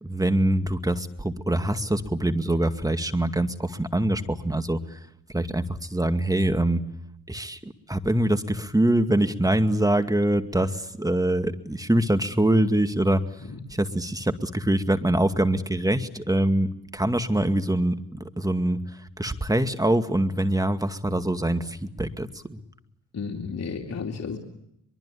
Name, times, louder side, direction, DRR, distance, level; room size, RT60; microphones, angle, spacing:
voice 1, 0.0-5.0 5.3-6.8 7.3-13.2 13.7-17.9 18.4-18.8 19.2-22.6, right 1 dB, 10° right, 8 dB, 2.3 m, -24 dB
voice 2, 23.1-24.4, left 5 dB, 45° left, 2 dB, 2.9 m, -32 dB
24.0 x 23.5 x 8.6 m, 0.77 s
hypercardioid pair, 40°, 38 cm